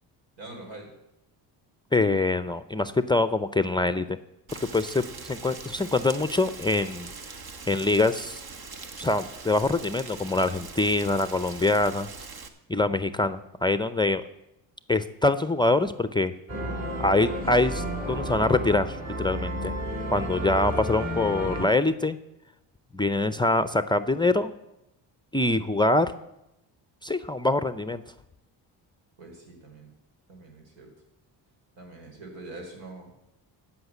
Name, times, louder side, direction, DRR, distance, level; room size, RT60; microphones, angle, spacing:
voice 1, 0.4-0.9 29.2-29.9 30.3-30.9 31.8-33.1, right 2 dB, 80° right, 2 dB, 4.4 m, -44 dB
voice 2, 1.9-4.2 4.7-7.1 7.7-8.4 9.0-12.1 12.7-14.2 14.9-16.3 17.0-19.8 20.1-22.2 22.9-24.5 25.3-26.1 27.0-28.0, left 2 dB, 10° left, 12 dB, 0.5 m, -24 dB
Rain, 4.5-12.5, right 4 dB, 55° right, 1.5 m, -42 dB
sound 1, 16.5-21.7, right 1 dB, 40° right, 3.8 m, -32 dB
15.0 x 5.8 x 8.3 m, 0.88 s
cardioid pair, 90°, 44 cm